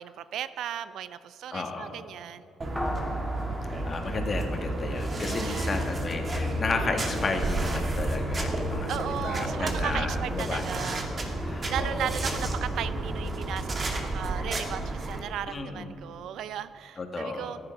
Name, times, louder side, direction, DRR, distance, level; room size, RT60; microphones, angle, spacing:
voice 1, 0.0-2.5 4.9-5.9 8.9-11.0 11.7-17.6, right 10 dB, 75° right, 14 dB, 0.5 m, -36 dB
voice 2, 1.5-1.9 3.7-11.1 11.4-12.1 15.5-16.0 17.0-17.5, left 3 dB, 40° left, 4 dB, 1.9 m, -33 dB
sound 1, 2.6-15.2, right 1 dB, 35° right, 2.1 m, -31 dB
sound 2, 2.8-5.5, equal, 5° left, 2.3 m, -38 dB
14.5 x 10.5 x 6.0 m, 3.0 s
cardioid pair, 90°, 0 cm